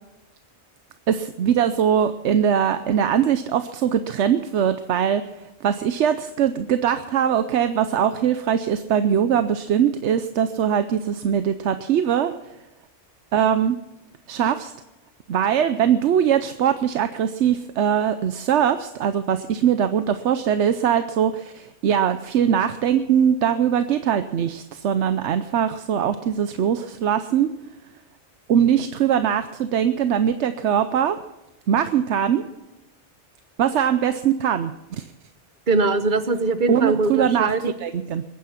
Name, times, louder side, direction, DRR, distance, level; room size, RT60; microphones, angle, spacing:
voice 1, 1.1-12.3 13.3-13.8 14.3-14.7 15.3-27.5 28.5-31.2 31.7-32.4 33.6-35.1 36.7-37.5 37.8-38.2, right 9 dB, 80° right, 10 dB, 1.0 m, -21 dB
voice 2, 35.7-37.7, right 3 dB, 45° right, 10 dB, 1.2 m, -21 dB
22.5 x 9.6 x 5.7 m, 0.98 s
omnidirectional pair, 1.2 m